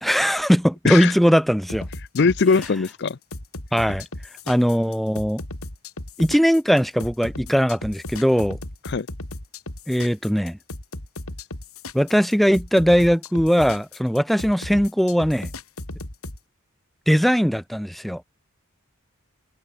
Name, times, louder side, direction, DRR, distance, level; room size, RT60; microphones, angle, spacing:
voice 1, 0.0-1.9 3.7-4.1 4.5-5.4 6.2-8.6 9.9-10.6 11.9-15.5 17.1-18.2, equal, ahead, 1.8 m, -20 dB
sound 1, 1.7-16.4, left 2 dB, 80° left, 5.0 m, -36 dB
voice 2, 2.1-3.2 8.9-9.1, left 4 dB, 50° left, 0.5 m, -20 dB
head